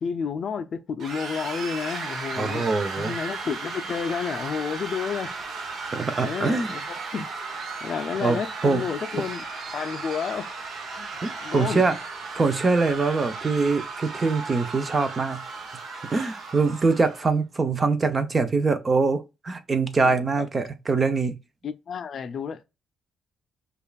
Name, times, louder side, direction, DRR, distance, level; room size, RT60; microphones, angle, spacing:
voice 1, 0.0-2.7 3.0-5.3 6.2-7.3 7.8-9.4 9.7-10.5 11.0-11.8 20.0-20.5 21.6-22.6, left 6 dB, 55° left, 0.4 m, -31 dB
sound 1, 1.0-17.3, right 4 dB, 60° right, 0.9 m, -35 dB
voice 2, 2.3-3.1 5.9-6.7 8.2-8.8 11.2-12.0 12.3-15.4 16.1-21.3, right 4 dB, 30° right, 0.6 m, -23 dB
5.2 x 2.4 x 2.3 m
cardioid pair, 90°, 0 cm